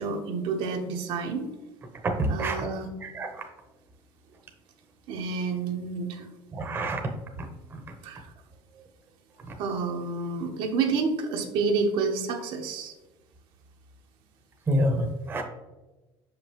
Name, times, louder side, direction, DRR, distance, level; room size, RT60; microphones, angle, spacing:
voice 1, 0.0-1.5 2.3-2.9 5.1-6.3 8.0-8.3 9.6-12.9, right 4 dB, 65° right, 3 dB, 0.8 m, -29 dB
voice 2, 2.0-2.7 3.0-3.4 6.5-7.0 9.5-9.6 14.7-15.4, right 1 dB, 25° right, 3 dB, 0.8 m, -27 dB
6.2 x 5.2 x 3.0 m, 1.1 s
cardioid pair, 140°, 10 cm